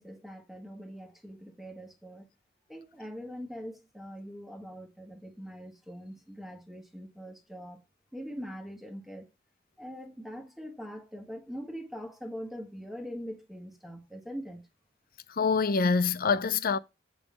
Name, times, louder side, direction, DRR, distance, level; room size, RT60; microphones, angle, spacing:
voice 1, 0.0-2.3 2.7-7.8 8.1-9.2 9.8-14.6, equal, ahead, 1.3 m, -42 dB
voice 2, 15.4-16.8, left 5 dB, 50° left, 0.6 m, -25 dB
8.0 x 3.9 x 6.0 m
head